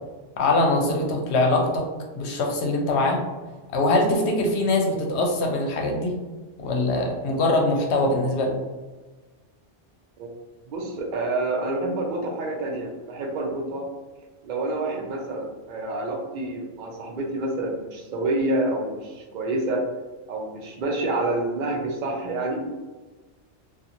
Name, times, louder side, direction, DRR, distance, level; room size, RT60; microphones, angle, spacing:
voice 1, 0.4-1.9 2.1-3.2 3.7-6.2 6.6-8.6, left 2 dB, 75° left, 1 dB, 0.9 m, -22 dB
voice 2, 10.7-13.9 14.4-19.8 20.3-22.6, right 2 dB, 55° right, 1 dB, 0.6 m, -28 dB
2.8 x 2.4 x 2.5 m, 1.3 s
omnidirectional pair, 1.2 m